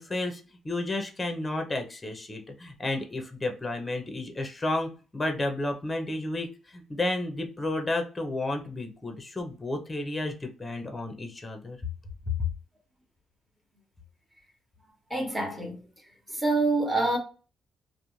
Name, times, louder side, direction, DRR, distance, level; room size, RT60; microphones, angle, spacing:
voice 1, 0.0-11.8, left 2 dB, 20° left, 0.6 m, -32 dB
voice 2, 15.1-15.8 16.3-17.2, right 2 dB, 10° right, 1.0 m, -26 dB
2.4 x 2.1 x 3.0 m
cardioid pair, 90°, 0 cm